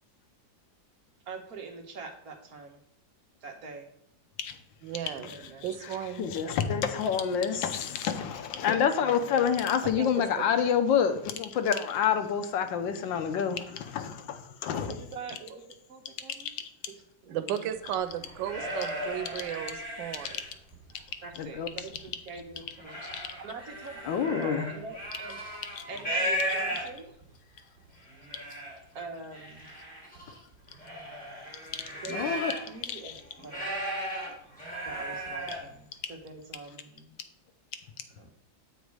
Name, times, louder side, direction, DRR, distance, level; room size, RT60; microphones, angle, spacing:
voice 1, 1.3-2.8 3.4-3.9 5.3-5.6 9.0-9.4 14.9-15.6 15.9-16.6 17.2-17.7 21.2-23.0 23.4-25.4 25.9-27.0 28.9-29.7 32.0-32.4 32.7-33.2 33.4-33.7 34.8-37.1 38.2-38.3, right 4 dB, 55° right, 1.4 m, -44 dB
voice 2, 4.8-5.3 5.6-6.3 10.0-10.3 17.3-20.4, right 10 dB, 90° right, 1.3 m, -35 dB
voice 3, 6.2-14.9 16.4-16.5 21.4-21.7 23.1-23.3 24.0-24.7 25.8-25.9 32.1-32.5 32.8-33.1, left 7 dB, 85° left, 1.5 m, -28 dB
sound 1, 17.9-20.8 21.2-22.0 22.4-27.2 27.8-27.9 28.1-28.7 29.3-32.8 33.1-35.7, equal, 5° left, 2.8 m, -36 dB
8.0 x 4.1 x 4.7 m
omnidirectional pair, 2.0 m